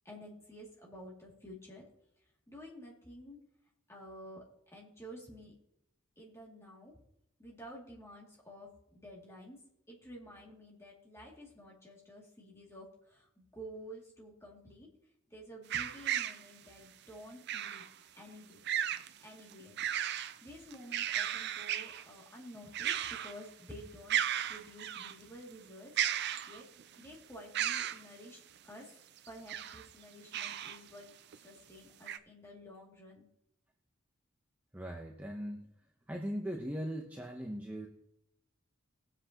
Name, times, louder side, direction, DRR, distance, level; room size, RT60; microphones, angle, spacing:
voice 1, 0.0-1.9 2.5-3.4 3.9-4.4 4.7-5.5 6.2-6.9 7.4-9.6 9.9-14.9 15.3-17.8 18.1-18.6 19.2-19.8 20.1-24.2 24.5-25.9 26.5-26.7 27.0-28.4 28.6-28.9 29.3-31.1 31.4-33.3, equal, 15° left, -3 dB, 2.5 m, -51 dB
sound 1, 15.7-16.4 17.5-17.9 18.7-19.1 19.5-20.4 20.7-22.0 22.7-23.4 23.7-23.8 24.1-25.1 26.0-26.8 27.5-28.0 29.3-29.9 30.3-30.8 31.3-31.4 32.1-32.2, right 10 dB, 50° right, 0.4 m, -34 dB
voice 2, 34.7-35.7 36.1-37.9, equal, 10° right, 0 dB, 0.9 m, -39 dB
20.0 x 7.9 x 2.9 m, 0.79 s
head